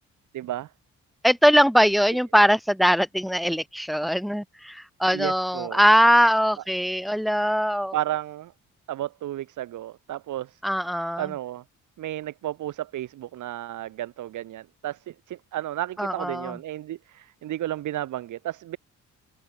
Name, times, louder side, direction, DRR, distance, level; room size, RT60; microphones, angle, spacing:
voice 1, 0.3-0.7 5.1-5.8 7.9-8.5 8.9-10.6 11.2-11.6 12.0-18.8, right 13 dB, 80° right, 4.2 m, -32 dB
voice 2, 1.2-7.9 10.6-11.3 16.0-16.6, equal, ahead, 4.9 m, -21 dB
cardioid pair, 90°, 30 cm